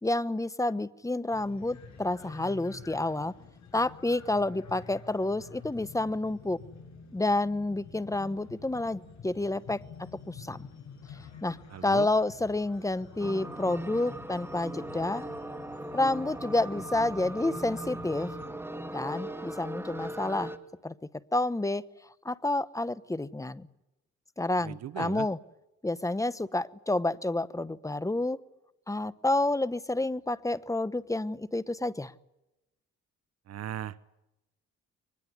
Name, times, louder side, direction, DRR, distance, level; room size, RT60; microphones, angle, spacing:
voice 1, 0.0-3.3 3.7-6.6 7.1-9.8 10.3-10.7 11.4-11.6 11.8-15.2 15.9-18.3 18.9-20.5 20.8-20.9 21.3-21.9 22.2-23.7 24.4-25.4 25.8-28.4 28.9-32.1, left 2 dB, 10° left, 17 dB, 1.0 m, -29 dB
sound 1, 1.3-18.5, left 6 dB, 65° left, 7.7 m, -49 dB
voice 2, 11.7-12.1 24.6-25.3 33.5-34.0, right 11 dB, 55° right, 17 dB, 0.8 m, -38 dB
sound 2, 13.2-20.6, right 1 dB, 10° right, 2.2 m, -39 dB
23.5 x 20.5 x 9.8 m, 0.94 s
cardioid pair, 90°, 30 cm